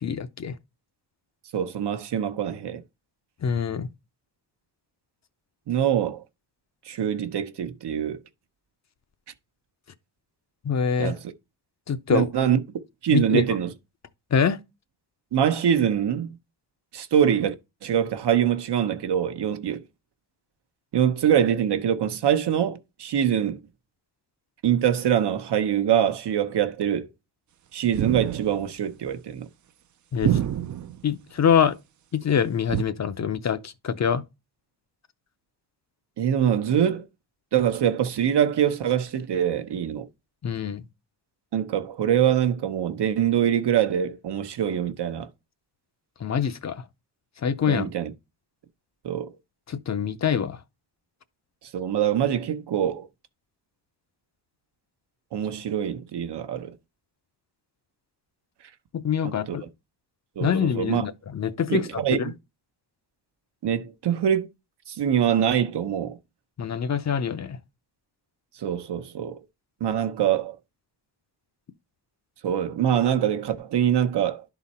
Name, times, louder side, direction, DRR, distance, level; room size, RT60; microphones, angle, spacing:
voice 1, 0.0-0.5 3.4-3.9 10.6-11.1 11.9-12.3 13.1-13.4 14.3-14.6 30.1-30.4 31.0-31.8 32.1-34.2 40.4-40.8 46.2-46.8 47.4-47.9 49.7-50.6 58.9-59.6 60.4-62.3 66.6-67.6, left 7 dB, 40° left, 0.5 m, -25 dB
voice 2, 1.5-2.8 5.7-6.2 6.9-8.2 11.0-11.2 12.1-12.6 13.0-13.7 15.3-16.4 16.9-17.5 17.8-19.8 20.9-23.6 24.6-27.1 27.7-29.5 36.2-37.1 37.5-40.1 41.5-45.3 47.7-48.1 49.0-49.3 51.7-53.1 55.3-56.8 59.2-59.6 60.4-61.1 61.7-62.2 63.6-64.5 64.9-66.2 68.6-69.4 69.8-70.6 72.4-74.4, right 9 dB, 75° right, 0.9 m, -24 dB
sound 1, 27.9-28.7 30.2-31.0 32.7-32.8, right 11 dB, 45° right, 0.4 m, -26 dB
11.0 x 4.0 x 4.2 m
wide cardioid pair, 155°, 41 cm